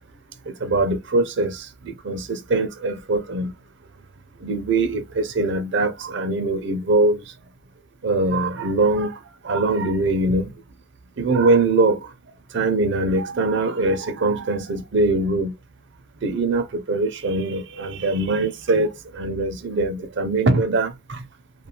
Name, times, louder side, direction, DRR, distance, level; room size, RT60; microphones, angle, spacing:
voice 1, 0.6-3.5 4.4-7.2 8.0-9.2 9.4-10.5 11.2-12.0 12.5-15.5 16.2-21.2, right 2 dB, 55° right, 0.6 m, -22 dB
2.6 x 2.3 x 2.9 m
head